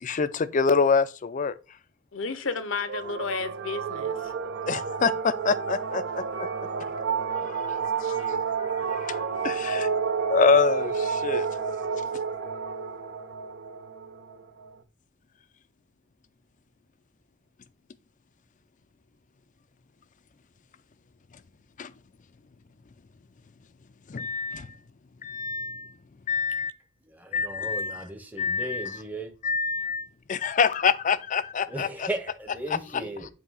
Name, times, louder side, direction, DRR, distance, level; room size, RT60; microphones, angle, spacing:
voice 1, 0.0-1.5 4.6-6.2 7.3-9.9 10.3-11.5 21.8-21.9 24.1-24.7 25.2-25.9 26.3-26.7 27.3-28.0 28.4-29.0 29.4-32.1 32.7-33.0, left 5 dB, 40° left, 0.4 m, -26 dB
voice 2, 2.1-4.3 8.0-8.2, left 4 dB, 70° left, 0.8 m, -32 dB
sound 1, 2.9-14.7, right 6 dB, 60° right, 0.6 m, -30 dB
voice 3, 27.1-29.3 31.7-33.3, right 2 dB, 10° right, 0.8 m, -36 dB
8.1 x 2.8 x 5.5 m
head